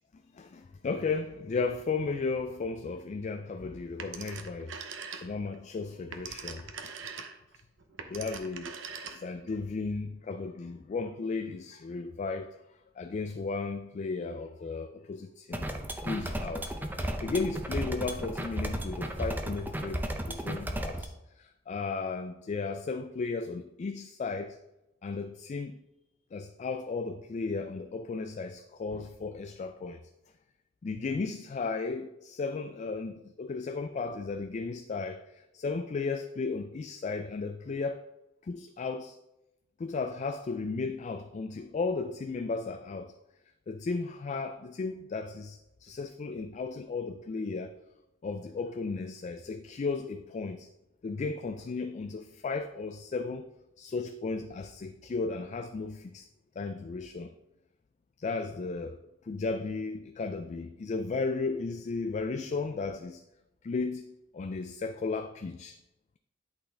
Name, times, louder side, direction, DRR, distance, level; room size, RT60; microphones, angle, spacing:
voice 1, 0.3-4.7 5.1-6.9 8.1-8.7 9.0-12.6 13.0-15.7 16.1-16.7 17.0-24.6 25.0-25.8 26.3-30.0 30.8-38.0 38.5-39.2 39.8-43.1 43.7-47.7 48.2-50.7 51.0-53.5 53.8-56.2 56.6-57.3 58.2-59.0 59.3-63.2 63.6-64.0 64.3-65.8, left 4 dB, 40° left, 8 dB, 0.3 m, -35 dB
Telephone, 4.0-5.5 5.9-9.5, right 6 dB, 85° right, 0.8 m, -42 dB
sound 1, 15.5-21.1, right 1 dB, 10° right, 0.6 m, -34 dB
11.0 x 4.0 x 3.4 m, 0.92 s
head